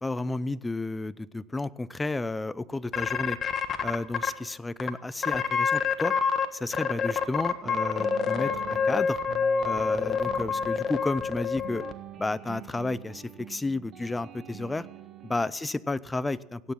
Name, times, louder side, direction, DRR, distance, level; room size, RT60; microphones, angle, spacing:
voice 1, 0.0-3.4 3.8-6.1 6.5-9.2 9.6-11.8 12.2-14.9 15.2-16.7, left 2 dB, 10° left, 19 dB, 0.5 m, -32 dB
sound 1, 2.9-4.3 4.8-4.9 5.2-6.5 6.7-11.9, left 6 dB, 35° left, 1.4 m, -27 dB
sound 2, 7.6-15.5, right 10 dB, 45° right, 1.0 m, -44 dB
16.5 x 9.4 x 7.4 m, 0.92 s
supercardioid pair, 105°, 0 cm